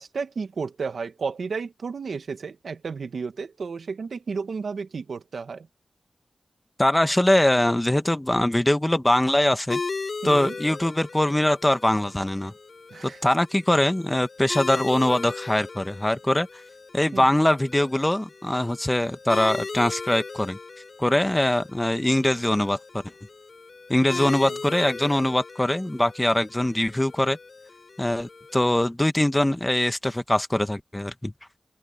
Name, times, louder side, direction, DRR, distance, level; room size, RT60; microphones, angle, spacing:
voice 1, 0.0-5.7 10.2-10.5 12.9-13.2 17.1-17.3 24.1-24.5, right 5 dB, 90° right, 1.4 m, -33 dB
voice 2, 6.8-9.8 10.2-12.5 13.0-16.5 16.9-20.6 21.0-23.0 23.9-27.4 28.0-31.3, left 1 dB, 15° left, 1.2 m, -22 dB
sound 1, 9.7-28.8, left 4 dB, 60° left, 8.0 m, -38 dB
open air
wide cardioid pair, 75°, 0 cm